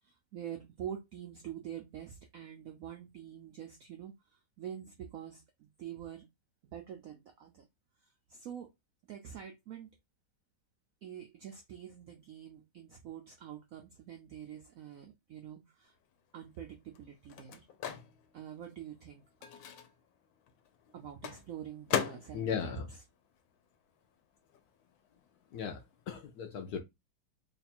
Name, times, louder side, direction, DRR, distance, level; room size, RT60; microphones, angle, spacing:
voice 1, 0.0-6.3 6.7-7.7 8.0-8.7 9.1-9.9 11.0-15.9 16.3-17.6 18.3-19.2 20.9-23.0, right 9 dB, 80° right, 0.7 m, -46 dB
Microwave oven, 16.0-24.1 24.4-26.3, left 9 dB, 90° left, 1.4 m, -41 dB
voice 2, 22.3-22.9 25.5-26.8, left 7 dB, 70° left, 0.9 m, -37 dB
3.2 x 2.3 x 4.2 m
omnidirectional pair, 2.1 m